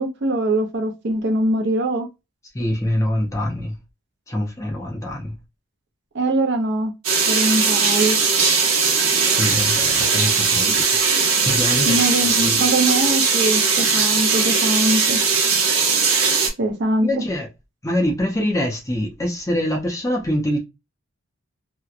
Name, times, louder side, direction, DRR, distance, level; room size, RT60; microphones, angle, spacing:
voice 1, 0.0-2.1 6.1-6.9 7.3-8.2 10.7-10.8 11.8-15.2 16.6-17.1, right 1 dB, 50° right, 0.5 m, -22 dB
voice 2, 2.5-3.7 4.3-5.4 9.3-10.9 11.4-12.0 12.3-12.6 17.0-17.5 17.8-20.6, left 1 dB, 15° left, 0.5 m, -24 dB
sound 1, 7.0-16.5, right 5 dB, 75° right, 0.9 m, -19 dB
2.7 x 2.1 x 2.4 m
head